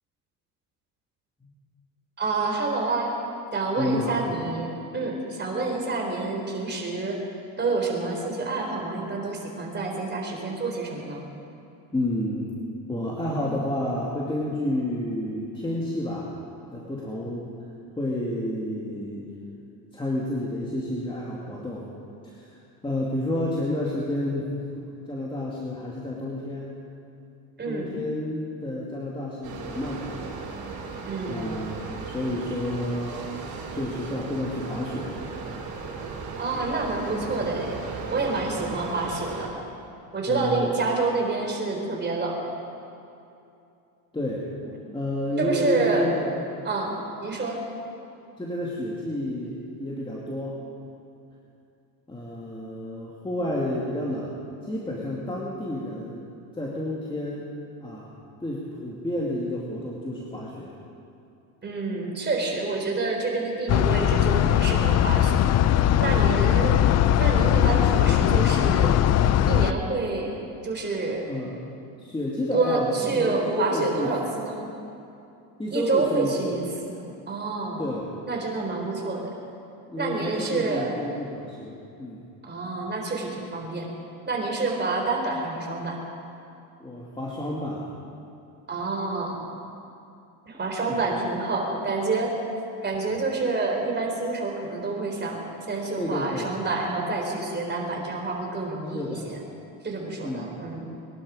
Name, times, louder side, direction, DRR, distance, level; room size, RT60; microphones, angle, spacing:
voice 1, 2.2-3.1 3.5-7.2 7.6-11.3 27.6-27.9 31.1-31.5 36.4-37.8 38.1-39.6 40.1-42.4 45.4-46.1 46.6-47.6 61.6-65.4 66.0-66.8 67.2-69.0 69.5-70.4 70.6-71.2 72.5-74.6 75.7-76.6 77.3-77.9 78.3-79.4 80.0-80.9 82.5-83.9 84.3-86.0 88.7-89.4 90.5-92.3 92.8-99.4 99.8-100.9, right 3 dB, 25° right, 0 dB, 3.9 m, -28 dB
voice 2, 3.8-4.2 11.9-12.6 12.9-16.3 16.7-17.5 18.0-19.3 19.9-21.9 22.2-24.8 25.1-26.7 27.7-30.4 31.3-33.3 33.7-35.2 38.7-38.8 40.3-40.8 44.1-44.5 44.9-46.3 48.4-50.6 52.1-56.2 56.5-57.5 57.8-58.1 58.4-60.7 71.2-74.2 75.6-76.6 77.8-78.1 79.9-82.2 86.8-87.9 90.9-91.0 96.0-96.5 98.9-99.3 100.2-100.6, left 1 dB, 10° left, -5 dB, 2.4 m, -30 dB
sound 1, 29.4-39.5, right 4 dB, 55° right, 4.0 m, -36 dB
sound 2, 63.7-69.7, left 11 dB, 40° left, 0.5 m, -20 dB
22.5 x 11.5 x 5.0 m, 2.7 s
supercardioid pair, 105°, 43 cm